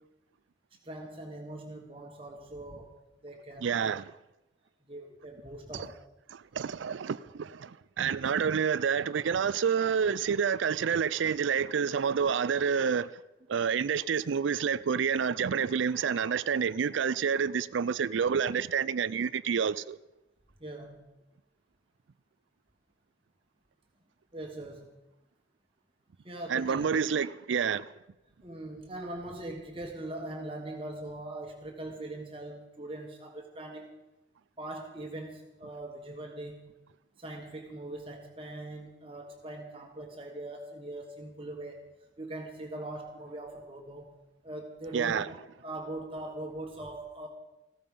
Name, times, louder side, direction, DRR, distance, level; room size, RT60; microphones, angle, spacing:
voice 1, 0.8-3.0 3.2-3.7 4.9-6.0 20.6-21.1 24.3-25.0 26.2-27.0 28.4-33.9 34.6-36.7 37.2-41.8 42.2-44.1 44.4-45.4 45.6-47.3, right 1 dB, 30° right, 1.5 m, -41 dB
voice 2, 3.6-4.1 6.3-13.1 13.5-20.0 26.5-27.9 44.9-45.3, right 6 dB, 85° right, 0.4 m, -28 dB
15.5 x 14.0 x 5.5 m
head